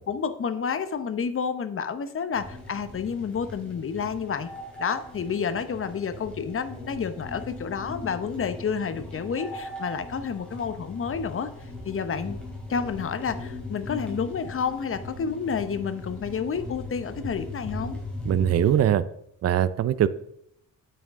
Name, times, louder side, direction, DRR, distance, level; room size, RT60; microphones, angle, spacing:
voice 1, 0.0-4.5 4.8-11.5 11.8-12.4 12.7-18.0, left 6 dB, 40° left, 11 dB, 0.8 m, -30 dB
sound 1, 2.3-18.8, left 2 dB, 5° left, 3.8 m, -39 dB
voice 2, 18.2-19.0 19.4-20.1, right 10 dB, 50° right, 15 dB, 0.5 m, -21 dB
9.1 x 8.7 x 3.6 m, 0.73 s
cardioid pair, 110°, 33 cm